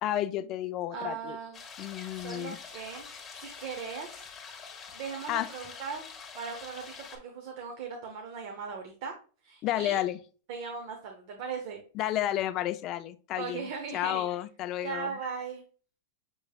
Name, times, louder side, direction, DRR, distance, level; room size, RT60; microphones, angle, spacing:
voice 1, 0.0-1.4 1.8-2.6 5.3-5.5 9.6-10.2 11.9-15.2, left 13 dB, 35° left, 11 dB, 0.4 m, -31 dB
voice 2, 0.9-1.6 2.1-3.1 3.3-4.6 4.9-9.1 9.4-10.0 10.5-11.8 13.4-14.3 14.8-15.6, right 6 dB, 55° right, 4 dB, 0.9 m, -39 dB
sound 1, 1.5-7.2, left 6 dB, 15° left, 1.4 m, -46 dB
6.2 x 3.2 x 2.3 m, 0.39 s
supercardioid pair, 150°, 0 cm